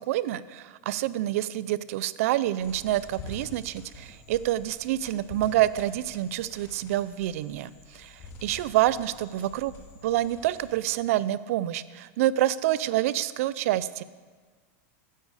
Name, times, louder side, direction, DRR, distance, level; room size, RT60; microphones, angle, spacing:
voice 1, 0.1-9.7 10.0-14.0, right 14 dB, 70° right, 17 dB, 0.5 m, -27 dB
sound 1, 2.6-11.0, left 2 dB, 35° left, 2.7 m, -47 dB
14.5 x 10.0 x 4.9 m, 1.5 s
supercardioid pair, 145°, 8 cm